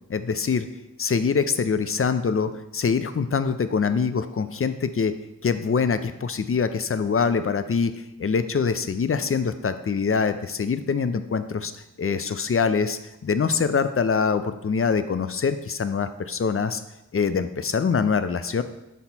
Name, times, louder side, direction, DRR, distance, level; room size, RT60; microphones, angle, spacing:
voice 1, 0.1-0.7 1.0-5.1 5.4-7.9 8.2-11.7 12.0-16.8 17.1-18.6, left 5 dB, 45° left, 11 dB, 0.5 m, -24 dB
6.1 x 4.2 x 4.2 m, 0.88 s
wide cardioid pair, 45°, 32 cm